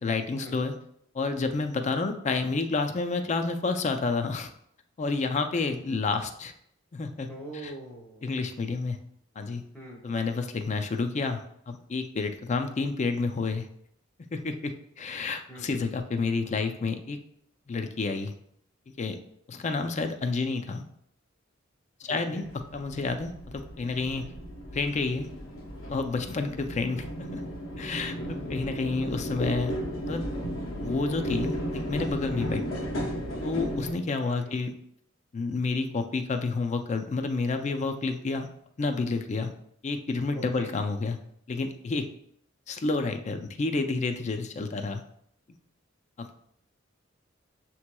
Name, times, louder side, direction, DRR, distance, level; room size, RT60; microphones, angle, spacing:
voice 1, 0.0-0.7 1.1-4.5 5.0-6.5 6.9-7.3 7.6-7.7 8.2-9.0 9.4-9.6 10.0-13.7 14.3-17.2 17.7-18.3 19.0-19.2 19.5-20.8 22.0-22.4 22.7-24.3 24.7-25.3 25.9-27.4 27.8-28.1 28.5-29.7 30.1-30.2 30.8-32.6 33.4-34.7 35.3-38.5 38.8-39.5 39.8-41.2 41.5-42.1 42.7-45.0 46.2-46.3, left 3 dB, 35° left, 7 dB, 0.4 m, -29 dB
voice 2, 7.3-8.3 9.7-10.0 15.5-15.9 22.1-22.4 27.9-28.3 32.3-32.5 34.2-34.5 40.3-40.7, right 1 dB, 5° left, -3 dB, 0.7 m, -43 dB
sound 1, 22.4-33.9, equal, 85° left, 0.7 m, -34 dB
6.9 x 2.9 x 2.2 m, 0.70 s
head